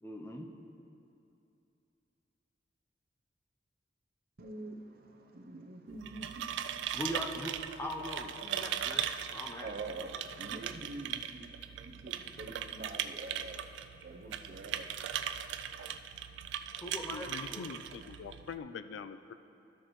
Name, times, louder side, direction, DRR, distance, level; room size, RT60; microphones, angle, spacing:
voice 1, 0.0-0.5 6.9-9.7 16.8-17.7, left 1 dB, 15° left, 1 dB, 0.5 m, -41 dB
voice 2, 4.4-6.5 9.6-11.5 11.8-13.6 14.0-15.1, right 2 dB, 55° right, 3 dB, 0.7 m, -45 dB
sound 1, 5.9-18.6, right 9 dB, 85° right, 0.3 m, -39 dB
voice 3, 17.1-19.3, left 6 dB, 90° left, 11 dB, 0.3 m, -44 dB
13.0 x 6.5 x 3.1 m, 2.7 s
head